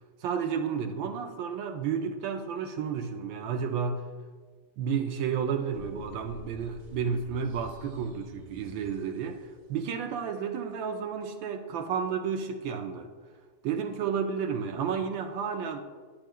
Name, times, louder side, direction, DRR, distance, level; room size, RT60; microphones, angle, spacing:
voice 1, 0.2-4.0 4.8-13.1 13.6-15.8, right 6 dB, 75° right, 6 dB, 1.2 m, -31 dB
sound 1, 5.7-9.6, left 1 dB, 55° right, 1.3 m, -49 dB
10.0 x 7.6 x 2.2 m, 1.5 s
omnidirectional pair, 2.2 m